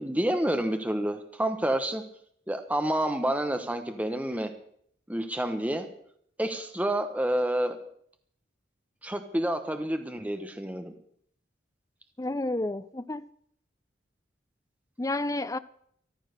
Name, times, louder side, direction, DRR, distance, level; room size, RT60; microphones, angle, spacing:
voice 1, 0.0-2.0 2.5-4.5 5.1-5.9 6.4-7.8 9.0-10.9, right 1 dB, 10° right, 7 dB, 1.0 m, -29 dB
voice 2, 12.2-13.3 15.0-15.6, left 2 dB, 20° left, 13 dB, 0.6 m, -30 dB
14.0 x 12.5 x 6.7 m, 0.67 s
head